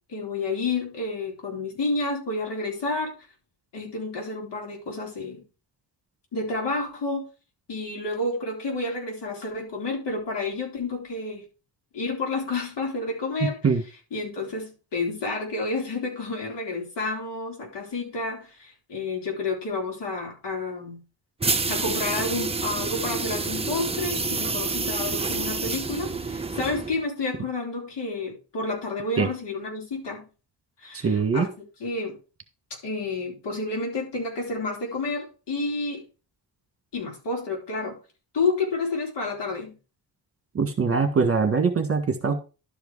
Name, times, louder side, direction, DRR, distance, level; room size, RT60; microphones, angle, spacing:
voice 1, 0.1-3.1 3.7-5.4 6.3-7.3 7.7-11.4 11.9-13.6 14.1-21.0 21.7-30.3 30.8-31.5 31.8-32.1 32.8-36.0 36.9-38.0 38.3-39.8, left 3 dB, 70° left, 4.0 m, -30 dB
voice 2, 13.4-13.8 29.2-29.3 30.9-31.5 40.5-42.4, right 5 dB, 30° right, 1.8 m, -23 dB
sound 1, 21.4-27.0, right 4 dB, 15° right, 0.8 m, -28 dB
12.0 x 5.0 x 4.7 m
cardioid pair, 120°, 42 cm